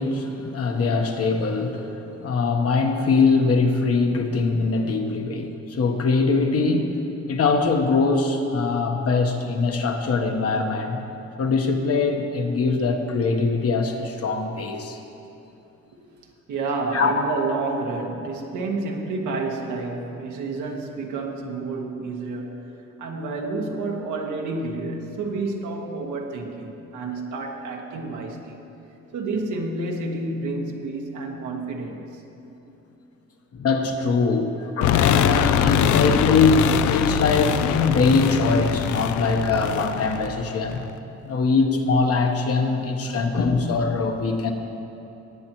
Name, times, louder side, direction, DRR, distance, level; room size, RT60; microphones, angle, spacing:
voice 1, 0.0-6.9 7.3-11.0 11.4-15.0 16.9-17.1 33.5-40.8 41.2-44.5, left 4 dB, 50° left, 4 dB, 1.1 m, -22 dB
voice 2, 16.5-22.7 23.0-28.6 29.1-32.2, right 3 dB, 75° right, 1 dB, 1.4 m, -29 dB
sound 1, 34.8-40.9, left 10 dB, 75° left, 0.5 m, -23 dB
18.0 x 8.7 x 3.0 m, 3.0 s
cardioid pair, 90°, 30 cm